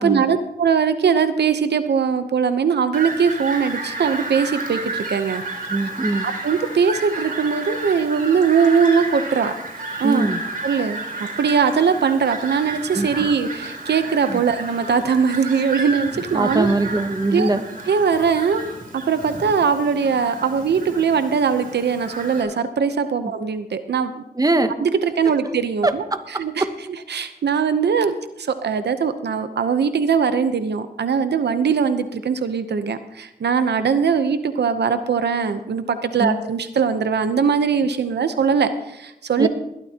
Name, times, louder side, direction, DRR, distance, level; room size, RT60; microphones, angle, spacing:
voice 1, 0.0-5.4 5.7-5.9 6.2-9.5 10.0-10.3 10.6-11.0 11.4-16.7 17.3-17.5 17.9-24.2 24.8-26.7 27.1-39.5, right 6 dB, 90° right, 10 dB, 0.8 m, -21 dB
Fowl, 2.9-22.4, right 2 dB, 55° right, 3.6 m, -32 dB
voice 2, 5.7-6.3 10.0-10.4 12.9-13.1 14.3-14.4 16.3-17.7 24.4-24.7 25.8-26.2 36.2-36.4 39.4-39.5, right 2 dB, 20° right, 9 dB, 1.0 m, -21 dB
20.5 x 12.5 x 2.9 m, 0.90 s
wide cardioid pair, 75°, 17 cm